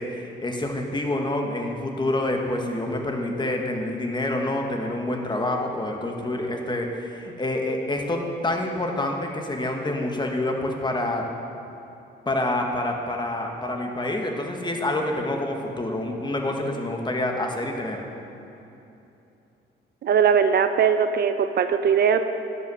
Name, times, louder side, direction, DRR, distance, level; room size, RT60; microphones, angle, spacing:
voice 1, 0.0-11.2 12.2-18.0, left 1 dB, 20° left, 2 dB, 1.3 m, -27 dB
voice 2, 20.0-22.2, right 7 dB, 55° right, 9 dB, 0.5 m, -20 dB
11.0 x 5.5 x 6.3 m, 2.9 s
cardioid pair, 90°, 20 cm